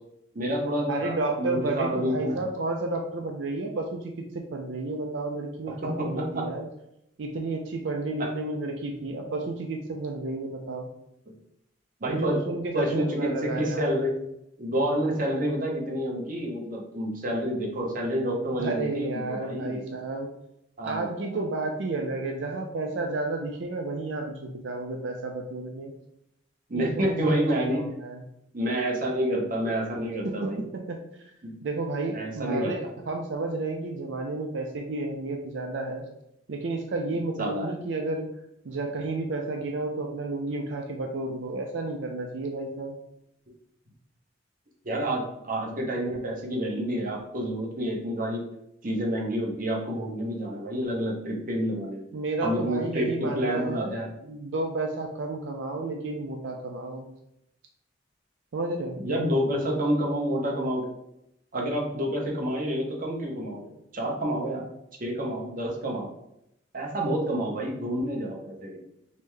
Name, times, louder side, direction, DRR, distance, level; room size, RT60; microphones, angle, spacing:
voice 1, 0.3-2.4 5.8-6.5 8.2-8.3 12.0-12.4 12.7-14.2 14.6-19.8 20.8-21.4 26.7-27.8 28.5-30.6 31.4-31.5 32.1-32.7 37.4-37.7 44.8-48.4 48.8-52.0 52.4-54.1 59.0-60.9 61.5-64.7 65.0-66.1 66.7-68.8, equal, 50° right, -1 dB, 0.9 m, -28 dB
voice 2, 0.9-6.6 7.2-10.9 12.1-13.9 18.6-20.3 20.8-25.9 26.7-28.2 30.2-31.0 31.6-36.1 36.5-38.3 38.6-43.0 52.1-57.1 58.5-59.0, right 2 dB, 85° right, 2 dB, 0.5 m, -31 dB
5.2 x 2.1 x 3.2 m, 0.81 s
head